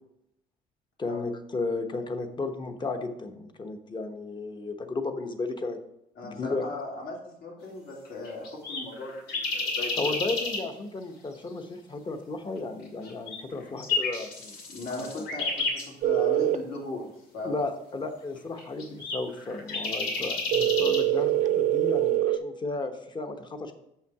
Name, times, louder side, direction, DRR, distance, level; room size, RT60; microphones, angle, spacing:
voice 1, 1.0-5.8 6.2-6.7 10.0-14.6 14.9-15.1 17.4-23.7, left 3 dB, 25° left, 6 dB, 1.0 m, -34 dB
voice 2, 6.2-10.4 14.7-17.1 17.3-17.5, left 3 dB, 70° left, -2 dB, 2.7 m, -38 dB
sound 1, 8.1-10.6 13.0-15.9 18.6-21.0, left 3 dB, 85° left, 2.5 m, -31 dB
sound 2, 16.0-16.6 20.5-22.4, right 13 dB, 50° right, 0.4 m, -24 dB
6.9 x 5.8 x 4.8 m, 0.82 s
cardioid pair, 110°, 17 cm